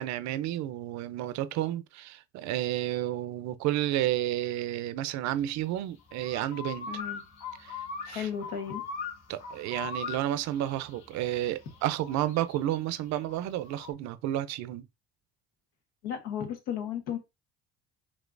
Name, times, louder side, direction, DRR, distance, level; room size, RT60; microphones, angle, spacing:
voice 1, 0.0-6.9 7.6-7.8 8.1-8.3 9.3-14.9, right 13 dB, 65° right, 0.6 m, -31 dB
sound 1, 5.4-13.9, left 5 dB, 65° left, 1.2 m, -41 dB
voice 2, 6.9-7.2 8.1-8.8 16.0-17.2, left 8 dB, 85° left, 1.3 m, -34 dB
5.3 x 2.8 x 2.5 m
supercardioid pair, 95°, 29 cm